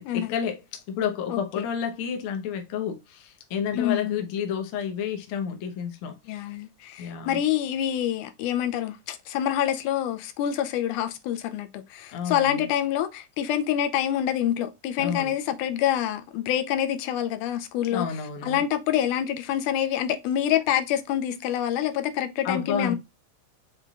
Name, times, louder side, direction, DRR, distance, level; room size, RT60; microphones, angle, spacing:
voice 1, 0.0-6.2 7.0-7.4 12.1-12.7 15.0-15.3 17.9-18.6 22.4-23.0, left 7 dB, 65° left, 1.4 m, -30 dB
voice 2, 1.3-1.7 3.7-4.3 6.3-18.1 18.4-23.0, left 10 dB, 85° left, 2.1 m, -26 dB
5.4 x 3.7 x 2.3 m
omnidirectional pair, 3.5 m